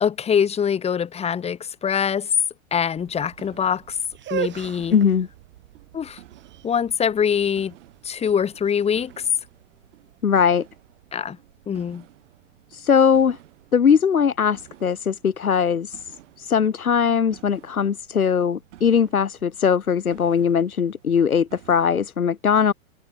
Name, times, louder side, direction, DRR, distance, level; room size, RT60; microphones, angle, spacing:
voice 1, 0.0-2.3 2.7-4.0 4.3-5.0 5.9-6.2 6.6-7.7 8.0-9.1 11.1-11.4 11.7-12.0, left 7 dB, 15° left, 1.2 m, -23 dB
sound 1, 2.9-22.1, right 14 dB, 60° right, 6.2 m, -51 dB
sound 2, 4.1-10.0, right 11 dB, 25° right, 3.8 m, -36 dB
voice 2, 4.9-5.3 10.2-10.6 12.7-13.4 13.7-16.0 16.4-22.7, left 7 dB, 85° left, 1.3 m, -20 dB
figure-of-eight pair, 105°, 42 cm